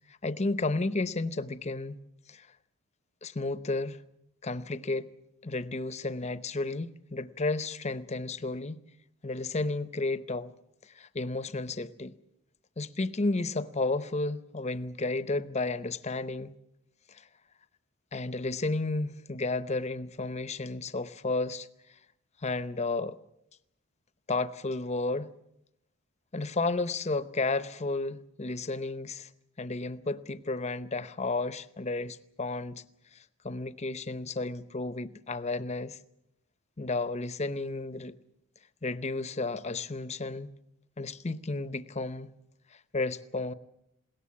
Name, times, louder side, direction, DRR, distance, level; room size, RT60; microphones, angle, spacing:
voice 1, 0.1-2.0 2.3-2.5 3.2-4.0 4.4-5.1 5.4-8.8 9.2-10.5 10.8-12.1 12.8-16.5 17.1-17.3 18.1-21.7 22.4-23.2 24.3-25.3 26.3-29.3 29.6-32.8 33.1-36.0 36.8-38.1 38.8-40.5 41.0-42.3 42.9-43.5, left 3 dB, 30° left, 0.7 m, -32 dB
21.0 x 17.5 x 8.6 m
head